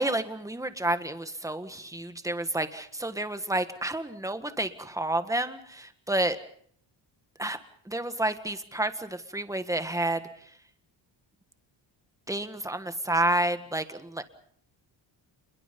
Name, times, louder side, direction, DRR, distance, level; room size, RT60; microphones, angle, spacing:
voice 1, 0.0-6.4 7.4-7.6 7.9-10.2 12.3-14.2, right 1 dB, 5° right, 9 dB, 1.7 m, -30 dB
28.0 x 22.0 x 5.4 m, 0.64 s
cardioid pair, 125°, 46 cm